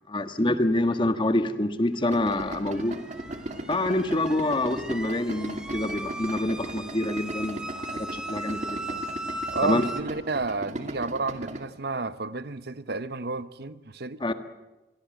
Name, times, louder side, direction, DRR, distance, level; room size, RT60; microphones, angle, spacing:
voice 1, 0.1-3.0 3.7-9.0 9.6-9.9 14.2-14.3, left 1 dB, 30° left, 1.6 m, -26 dB
Idling, 2.1-11.6, right 1 dB, 45° right, 2.5 m, -37 dB
sound 1, 2.4-10.0, right 1 dB, 5° right, 1.7 m, -38 dB
voice 2, 9.5-14.2, right 3 dB, 65° right, 1.0 m, -31 dB
27.5 x 22.0 x 7.8 m
head